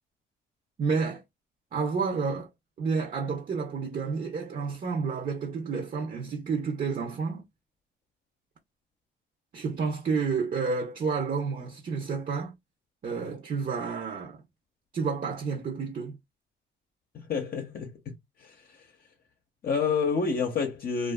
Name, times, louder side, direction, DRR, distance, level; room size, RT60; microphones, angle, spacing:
voice 1, 0.8-1.2 1.7-2.5 2.8-7.4 9.5-12.5 13.0-14.4 14.9-16.2, right 5 dB, 45° right, 0.7 m, -30 dB
voice 2, 17.1-18.9 19.6-21.1, left 5 dB, 50° left, 0.7 m, -29 dB
2.5 x 2.4 x 2.2 m
cardioid pair, 90°, 20 cm